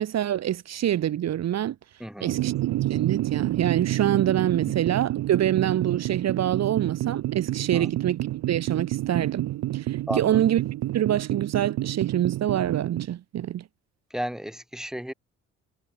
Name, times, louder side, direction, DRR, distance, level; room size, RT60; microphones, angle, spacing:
voice 1, 0.0-1.7 2.2-2.5 2.9-9.4 9.7-10.6 10.9-13.6, right 11 dB, 60° right, 1.2 m, -25 dB
voice 2, 2.0-2.4 4.7-4.8 7.7-7.9 10.1-10.4 14.1-15.1, equal, ahead, 6.5 m, -33 dB
sound 1, 2.3-13.1, right 16 dB, 90° right, 3.0 m, -29 dB
cardioid pair, 90°, 30 cm